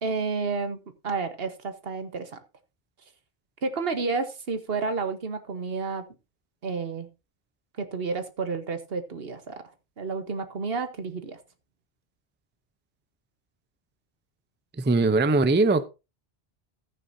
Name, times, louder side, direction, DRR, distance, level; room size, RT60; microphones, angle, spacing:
voice 1, 0.0-0.8 1.0-2.4 3.6-6.0 6.6-7.1 7.8-9.6 10.0-11.4, right 4 dB, 70° right, 1.4 m, -30 dB
voice 2, 14.8-15.9, right 3 dB, 15° right, 0.5 m, -21 dB
14.0 x 9.1 x 2.7 m
omnidirectional pair, 1.0 m